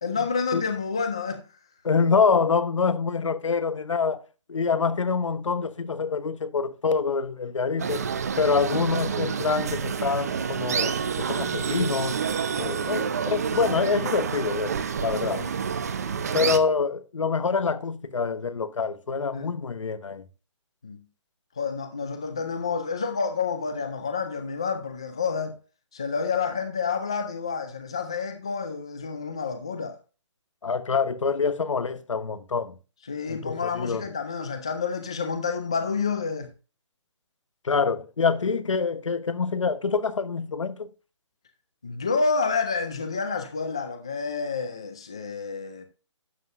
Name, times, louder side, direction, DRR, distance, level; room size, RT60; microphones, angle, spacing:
voice 1, 0.0-1.4 12.9-13.0 15.2-15.5 19.3-19.5 20.8-21.0 21.6-25.6 25.9-30.0 33.1-36.5 41.8-45.9, left 5 dB, 10° left, 0.3 m, -29 dB
voice 2, 1.8-4.2 4.5-8.1 8.4-12.1 12.6-15.4 16.3-20.2 30.6-32.8 33.3-34.1 37.6-40.9, left 5 dB, 85° left, 1.1 m, -26 dB
sound 1, 7.8-16.6, right 6 dB, 30° right, 0.7 m, -28 dB
12.0 x 7.6 x 2.5 m
hypercardioid pair, 175°, 16 cm